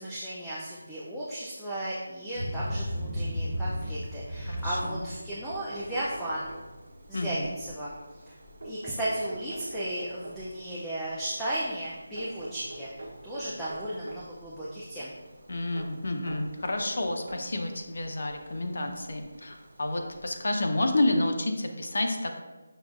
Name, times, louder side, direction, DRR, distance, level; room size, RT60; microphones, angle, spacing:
voice 1, 0.0-6.5 7.1-8.3 8.6-15.1, right 1 dB, ahead, -11 dB, 0.3 m, -35 dB
sound 1, 2.3-21.4, equal, 50° right, 1.0 m, -41 dB
voice 2, 4.5-5.1 7.1-7.5 15.5-22.4, left 2 dB, 60° left, 3 dB, 0.5 m, -30 dB
sound 2, 5.4-7.1 8.6-10.7 12.2-14.4 15.8-17.6 18.5-18.6 19.9-20.0 20.3-20.4, right 1 dB, 70° right, 0.7 m, -44 dB
6.1 x 2.4 x 2.4 m, 1.2 s
figure-of-eight pair, 170°, 0 cm